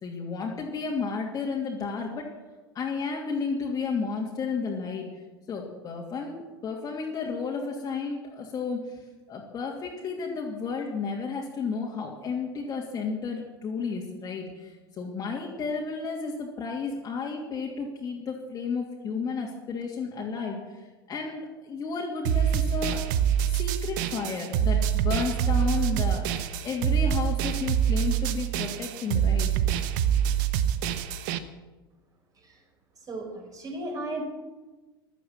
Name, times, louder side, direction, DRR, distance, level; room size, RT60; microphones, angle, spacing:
voice 1, 0.0-2.3 2.7-5.1 5.5-9.0 9.3-23.0 23.5-29.5, left 5 dB, 30° left, -2 dB, 2.8 m, -32 dB
sound 1, 22.2-31.4, right 9 dB, 55° right, 1.2 m, -25 dB
voice 2, 33.1-34.2, right 2 dB, 30° right, 2 dB, 5.3 m, -35 dB
16.0 x 12.0 x 7.5 m, 1.2 s
figure-of-eight pair, 85°, 13 cm